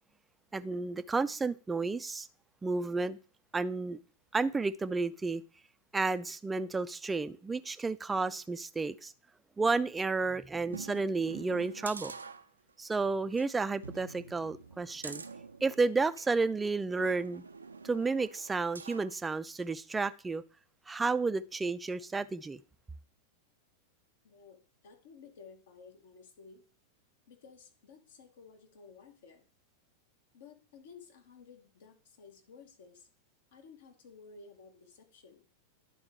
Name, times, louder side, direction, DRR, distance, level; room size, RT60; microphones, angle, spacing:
voice 1, 0.5-2.3 2.6-3.2 3.5-4.0 4.3-5.4 5.9-9.1 9.6-12.1 12.8-15.2 15.6-17.4 17.8-20.4 20.9-22.6, right 3 dB, 10° right, 0.4 m, -31 dB
sound 1, 10.7-12.9 13.3-13.4 13.8-16.3 17.0-19.2 19.6-19.7, right 4 dB, 75° right, 0.4 m, -47 dB
voice 2, 24.2-26.6 27.3-29.5 30.3-33.1 33.5-35.5, left 5 dB, 60° left, 1.3 m, -55 dB
10.5 x 3.9 x 4.5 m
figure-of-eight pair, 90°, 0 cm